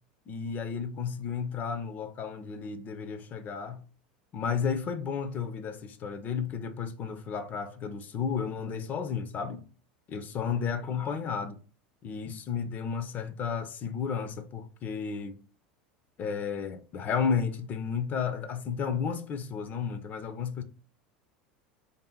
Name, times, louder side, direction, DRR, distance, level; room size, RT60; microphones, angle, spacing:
voice 1, 0.3-3.8 4.3-9.6 10.1-11.6 12.0-15.4 16.2-20.6, left 6 dB, 35° left, 0.6 m, -33 dB
3.3 x 2.7 x 4.3 m
figure-of-eight pair, 80°, 5 cm